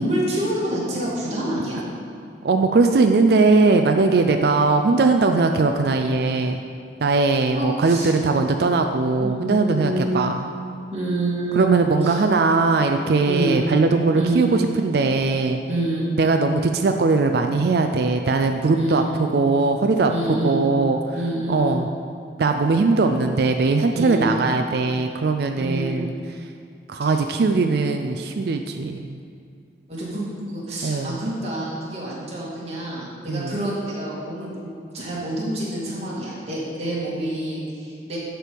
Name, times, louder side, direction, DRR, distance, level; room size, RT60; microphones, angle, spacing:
voice 1, 0.0-1.8 4.3-4.6 7.5-8.1 9.2-10.4 10.9-12.2 13.3-13.6 14.1-14.5 15.7-16.1 18.7-19.1 20.1-20.6 21.1-21.7 23.9-24.4 25.6-26.0 27.0-27.1 29.9-38.2, right 1 dB, 35° right, -7 dB, 2.1 m, -27 dB
voice 2, 2.4-6.6 7.0-10.5 11.5-15.6 16.2-21.2 21.5-21.9 22.4-26.1 26.9-29.2 30.8-31.2 33.3-33.5, right 3 dB, 55° right, 5 dB, 0.4 m, -20 dB
11.0 x 4.6 x 5.2 m, 2.3 s
head